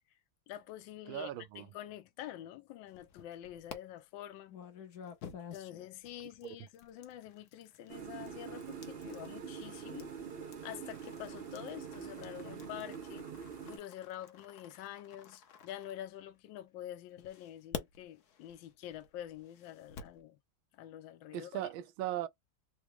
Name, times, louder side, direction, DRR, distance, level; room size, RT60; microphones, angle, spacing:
voice 1, 0.5-4.6 5.5-10.1 10.6-13.3 13.6-20.4 20.7-21.7, left 12 dB, 80° left, 1.3 m, -47 dB
voice 2, 1.1-1.7 6.4-6.6 21.3-22.3, right 13 dB, 85° right, 1.4 m, -38 dB
sound 1, 2.9-3.8 4.5-16.5 17.2-20.2, left 7 dB, 65° left, 1.1 m, -50 dB
sound 2, 7.9-13.8, right 7 dB, 50° right, 0.7 m, -45 dB
4.0 x 2.1 x 3.0 m
omnidirectional pair, 2.1 m